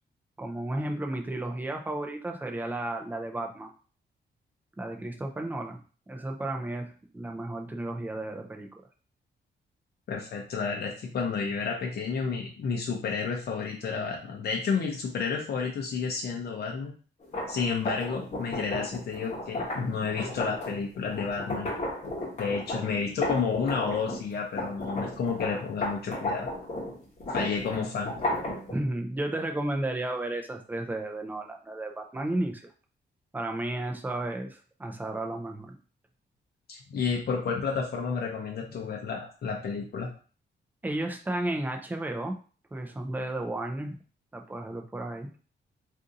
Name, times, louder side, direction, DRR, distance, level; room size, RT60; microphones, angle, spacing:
voice 1, 0.4-3.7 4.8-5.8 6.1-8.7 28.7-32.6 33.3-35.8 40.8-42.3 42.7-43.9 44.3-45.3, right 1 dB, 10° right, 3 dB, 0.4 m, -33 dB
voice 2, 10.1-16.9 17.5-21.7 22.4-26.5 27.3-28.1 36.7-40.1, left 5 dB, 60° left, 0 dB, 0.6 m, -31 dB
sound 1, 17.2-24.2 24.6-28.7, left 1 dB, 40° left, 1.0 m, -34 dB
2.6 x 2.6 x 3.7 m, 0.38 s
wide cardioid pair, 170°, 19 cm